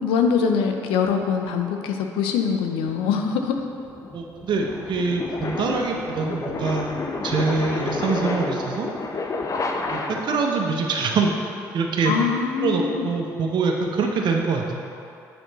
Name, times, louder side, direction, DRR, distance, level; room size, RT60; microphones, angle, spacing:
voice 1, 0.0-3.6 12.0-13.1, left 6 dB, 85° left, 4 dB, 0.5 m, -23 dB
sound 1, 2.9-10.5, left 3 dB, 40° left, 0.6 m, -30 dB
voice 2, 4.1-6.9 7.2-8.9 9.6-11.3 11.7-12.1 12.6-15.0, right 4 dB, 60° right, 1 dB, 0.7 m, -24 dB
6.1 x 4.4 x 4.0 m, 2.6 s
supercardioid pair, 65°, 9 cm